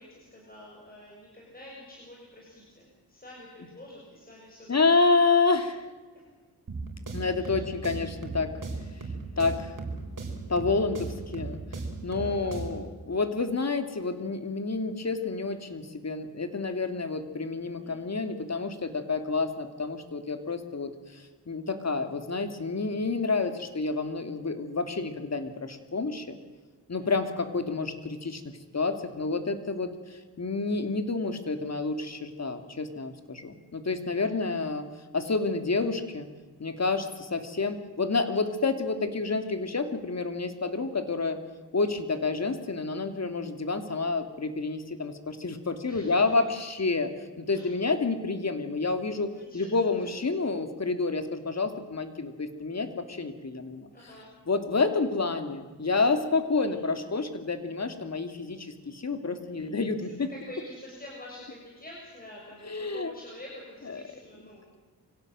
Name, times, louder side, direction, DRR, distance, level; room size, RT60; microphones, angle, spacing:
voice 1, 0.0-4.8 6.1-6.2 7.4-7.6 11.9-12.5 17.7-18.0 26.9-27.1 34.1-34.3 39.2-39.4 45.9-46.3 47.5-47.7 49.4-49.7 50.0-50.1 53.9-54.3 56.5-56.9 59.5-64.7, left 1 dB, 20° left, -3 dB, 6.9 m, -48 dB
voice 2, 4.7-5.9 7.1-8.5 9.4-9.8 10.5-11.6 12.0-26.3 26.9-34.9 35.1-36.3 36.6-41.4 41.7-47.1 47.4-53.9 54.5-60.3 62.6-63.1 63.9-64.0, left 3 dB, 40° left, 8 dB, 2.9 m, -29 dB
sound 1, 6.7-12.9, right 3 dB, 50° right, 5.2 m, -37 dB
25.0 x 17.0 x 7.8 m, 1.3 s
cardioid pair, 80°, 41 cm